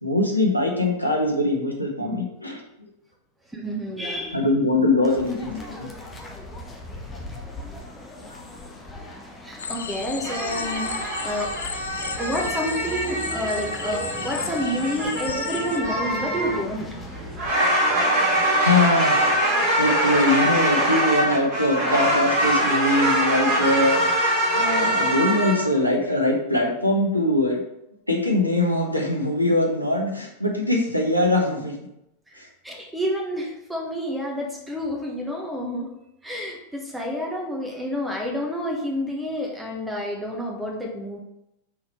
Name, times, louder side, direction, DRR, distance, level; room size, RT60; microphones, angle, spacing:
voice 1, 0.0-2.9 4.3-5.9 8.3-8.4 18.1-19.2 19.8-27.6 28.1-31.7 32.4-32.5, left 1 dB, 90° left, 0 dB, 1.2 m, -22 dB
voice 2, 3.5-4.5 9.4-11.6 12.2-16.9 32.3-32.4 32.6-35.9 36.2-41.2, equal, 5° right, 0 dB, 1.4 m, -29 dB
sound 1, 5.0-17.5, left 1 dB, 15° left, 1.0 m, -39 dB
sound 2, 9.6-15.8, left 6 dB, 65° left, 0.4 m, -35 dB
sound 3, 10.2-25.8, right 1 dB, 45° right, 1.8 m, -23 dB
5.9 x 4.1 x 4.7 m, 0.84 s
figure-of-eight pair, 90°, 0 cm